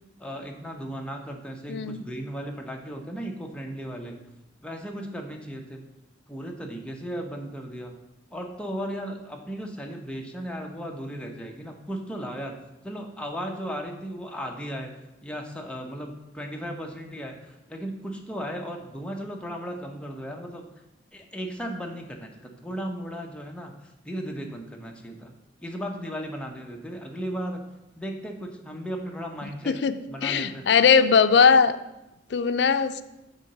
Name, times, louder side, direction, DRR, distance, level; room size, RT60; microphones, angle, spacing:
voice 1, 0.2-4.3 4.6-5.8 6.3-8.0 8.3-12.5 12.8-14.9 15.2-20.6 21.1-25.3 25.6-27.7 28.0-29.8 30.1-30.7, equal, 5° left, 2 dB, 0.8 m, -36 dB
voice 2, 1.7-2.0 29.7-30.0 30.2-31.8 32.3-33.0, left 6 dB, 70° left, 11 dB, 0.4 m, -19 dB
7.2 x 3.9 x 6.6 m, 0.94 s
head